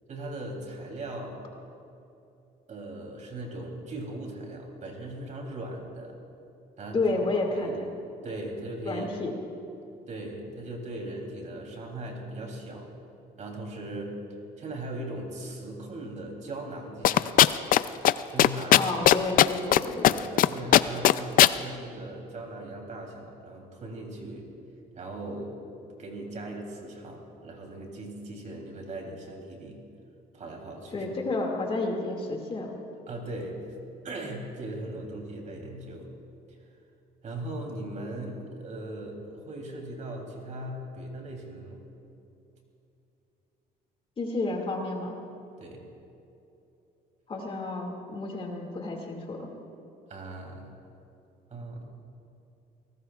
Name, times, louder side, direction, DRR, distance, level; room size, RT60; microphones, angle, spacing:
voice 1, 0.1-1.4 2.7-6.1 6.8-7.2 7.5-7.8 8.2-9.1 10.1-12.9 13.4-14.1 14.6-17.4 18.3-18.8 20.1-24.4 24.9-25.5 25.8-29.8 30.3-31.1 33.1-33.6 34.0-36.1 36.5-36.6 37.2-41.8 45.6-45.9 50.1-50.6 51.5-51.9, right 1 dB, 45° right, 1 dB, 3.2 m, -39 dB
voice 2, 6.9-7.9 8.9-9.3 18.7-20.1 30.9-32.7 44.2-45.2 47.3-49.5, left 2 dB, 35° left, 1 dB, 2.3 m, -30 dB
sound 1, 17.0-17.8 18.0-18.1 18.4-19.8 20.0-20.5 20.7-21.5, left 12 dB, 55° left, 0.4 m, -17 dB
24.0 x 18.5 x 2.4 m, 2.8 s
cardioid pair, 110°, 17 cm